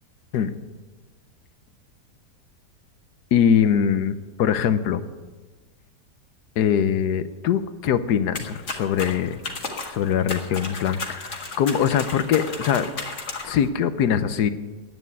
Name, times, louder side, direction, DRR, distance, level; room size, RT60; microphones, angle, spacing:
voice 1, 3.3-5.0 6.6-9.4 9.9-12.9 13.4-14.5, left 8 dB, 75° left, 12 dB, 1.3 m, -22 dB
sound 1, 8.3-13.7, left 3 dB, 45° left, 2.0 m, -34 dB
11.0 x 9.2 x 9.4 m, 1.3 s
omnidirectional pair, 1.8 m